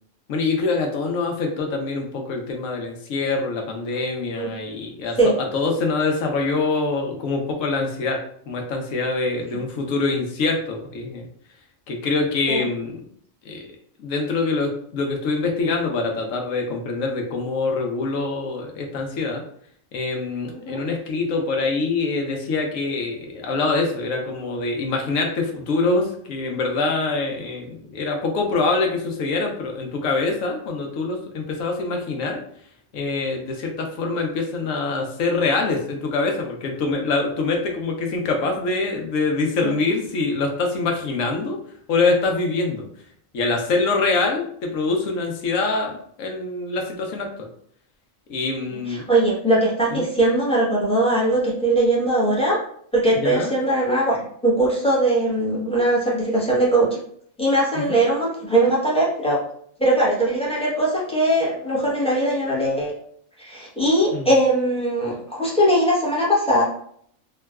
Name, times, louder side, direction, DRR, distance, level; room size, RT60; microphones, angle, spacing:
voice 1, 0.3-11.3 11.9-13.0 13.4-13.6 14.0-19.4 19.9-32.4 32.9-41.6 41.9-42.8 43.3-47.5 48.3-49.0 49.9-50.1 53.1-53.5 57.7-58.0 64.1-64.3, left 3 dB, 75° left, 2 dB, 1.0 m, -24 dB
voice 2, 20.5-20.8 39.6-39.7 48.9-52.6 52.9-54.2 54.4-57.0 57.4-59.4 59.8-62.9 63.4-66.6, right 1 dB, 5° left, -6 dB, 0.6 m, -20 dB
3.7 x 2.2 x 2.3 m, 0.63 s
omnidirectional pair, 1.4 m